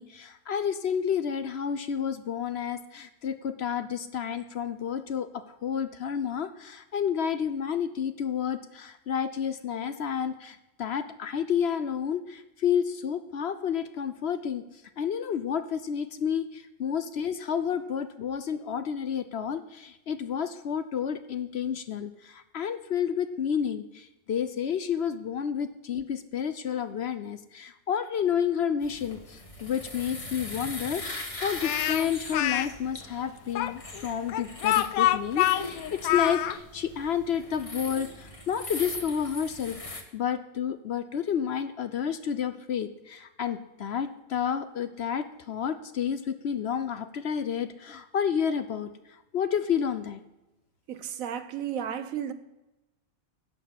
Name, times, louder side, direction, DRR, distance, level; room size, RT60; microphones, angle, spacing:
voice 1, 0.0-14.6 15.0-36.4 36.7-39.8 40.1-48.9 49.3-50.2, left 8 dB, 55° left, 0.8 m, -30 dB
sound 1, 28.8-40.0, left 2 dB, 25° left, 1.2 m, -40 dB
Speech, 31.6-32.7 33.5-36.6, left 13 dB, 80° left, 1.0 m, -26 dB
voice 2, 50.9-52.3, right 9 dB, 70° right, 1.2 m, -33 dB
11.0 x 6.9 x 7.5 m
omnidirectional pair, 1.5 m